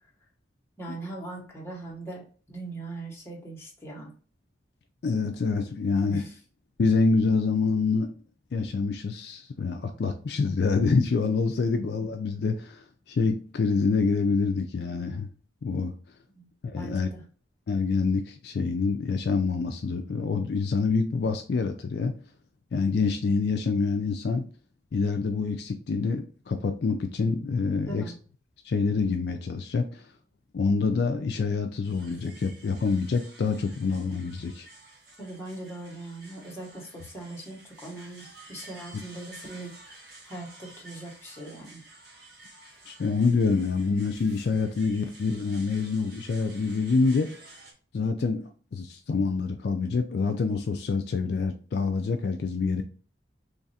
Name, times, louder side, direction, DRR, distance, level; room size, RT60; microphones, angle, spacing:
voice 1, 0.8-4.1 6.1-6.3 16.3-16.5 16.8-17.2 27.8-28.1 35.2-39.7 40.3-41.8, right 2 dB, 15° left, 1.0 m, -40 dB
voice 2, 5.0-6.2 6.8-8.2 8.5-15.3 15.6-15.9 16.6-17.1 17.7-22.1 22.7-24.4 24.9-28.0 28.6-30.1 30.5-34.7 42.9-47.3 47.9-52.8, left 4 dB, 60° left, 0.4 m, -26 dB
sound 1, 31.8-47.7, right 2 dB, 55° right, 1.1 m, -51 dB
3.1 x 2.4 x 4.0 m
head